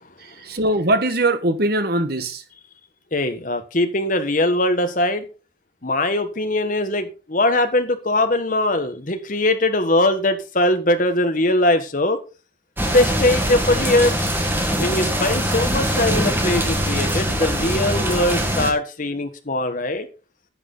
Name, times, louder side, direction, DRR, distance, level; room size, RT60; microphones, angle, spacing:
voice 1, 0.2-2.4, right 1 dB, 50° right, 1.2 m, -21 dB
voice 2, 3.1-5.2 5.8-12.2 12.9-14.2 14.8-20.1, left 1 dB, 40° left, 1.4 m, -21 dB
sound 1, 12.8-18.7, equal, 10° right, 1.6 m, -22 dB
11.0 x 8.0 x 3.9 m
head